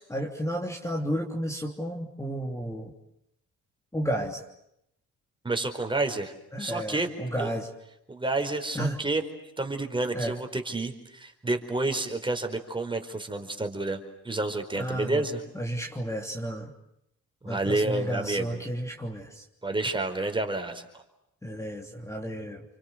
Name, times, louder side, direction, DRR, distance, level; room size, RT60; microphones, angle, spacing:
voice 1, 0.1-2.9 3.9-4.4 6.5-7.7 8.7-9.0 10.1-10.4 14.7-15.3 15.5-16.7 17.4-19.4 21.4-22.6, equal, 10° left, 1 dB, 3.1 m, -32 dB
voice 2, 5.4-7.1 7.4-7.5 8.1-9.2 9.6-15.4 17.4-18.6 19.6-20.8, right 2 dB, 15° right, 5 dB, 4.8 m, -29 dB
29.5 x 24.5 x 8.0 m, 0.80 s
cardioid pair, 90°, 30 cm